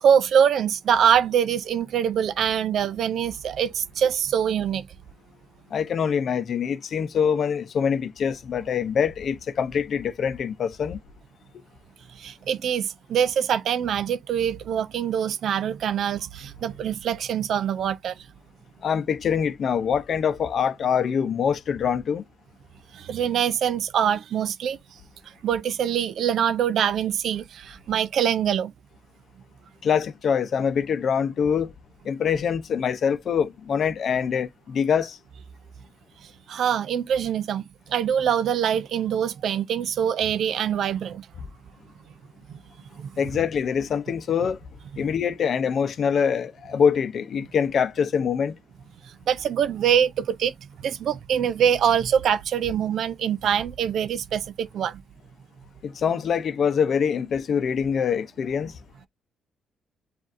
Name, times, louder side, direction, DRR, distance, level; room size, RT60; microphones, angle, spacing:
voice 1, 0.0-4.9 12.2-18.1 22.9-24.8 25.4-28.7 36.5-41.3 42.5-42.6 43.0-43.1 49.3-50.5 50.8-55.0, right 8 dB, 70° right, 0.4 m, -24 dB
voice 2, 5.7-11.0 18.8-22.2 29.8-31.7 32.0-35.2 43.2-44.6 45.0-48.6 55.8-58.7, left 7 dB, 55° left, 0.6 m, -24 dB
7.4 x 2.6 x 2.6 m
cardioid pair, 90°, 0 cm